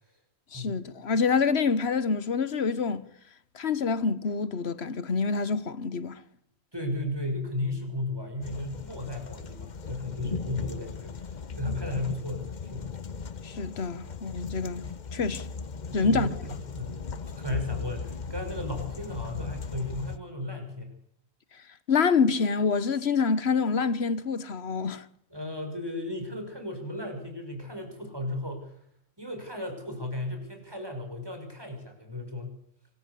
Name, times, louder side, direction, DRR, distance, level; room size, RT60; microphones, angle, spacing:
voice 1, 0.5-3.1 3.5-6.2 13.4-14.8 15.1-15.4 15.9-16.3 21.9-25.0, left 5 dB, 75° left, 1.4 m, -26 dB
voice 2, 6.7-12.9 15.9-17.0 17.2-20.9 25.3-28.8 29.2-32.5, left 1 dB, 20° right, 5.9 m, -35 dB
sound 1, 8.4-20.2, left 5 dB, 45° left, 1.0 m, -37 dB
24.5 x 13.5 x 8.3 m
omnidirectional pair, 1.1 m